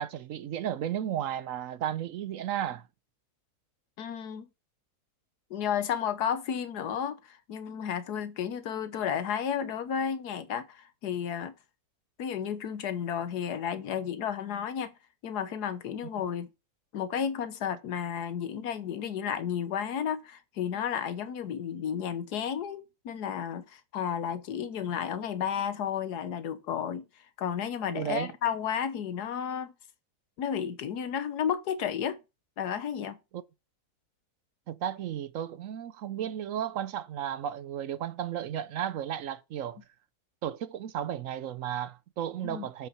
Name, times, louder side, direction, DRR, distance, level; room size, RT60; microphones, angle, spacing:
voice 1, 0.0-2.8 27.9-28.3 34.7-39.8 40.4-42.9, right 10 dB, 65° right, 0.9 m, -34 dB
voice 2, 4.0-4.5 5.5-11.5 12.2-14.9 15.2-16.5 16.9-27.0 27.4-29.7 30.4-32.2 32.6-33.2 42.4-42.7, left 8 dB, 90° left, 1.5 m, -32 dB
7.3 x 5.8 x 5.6 m
omnidirectional pair, 1.6 m